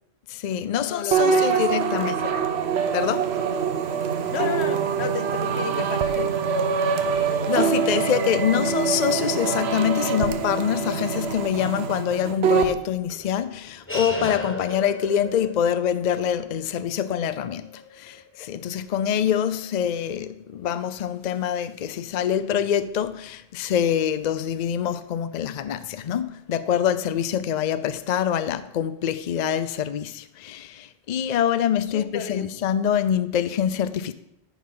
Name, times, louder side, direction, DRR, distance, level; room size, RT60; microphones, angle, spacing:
voice 1, 0.3-2.2 2.9-3.3 7.0-34.1, left 9 dB, 55° left, 0.6 m, -25 dB
voice 2, 0.8-1.6 1.9-2.5 2.8-2.9 4.3-6.4 31.9-32.5, left 7 dB, 80° left, 1.0 m, -33 dB
sound 1, 1.1-12.7, right 6 dB, 80° right, 1.0 m, -24 dB
sound 2, 13.1-19.9, left 1 dB, 15° left, 1.0 m, -37 dB
14.0 x 5.8 x 3.8 m
omnidirectional pair, 1.1 m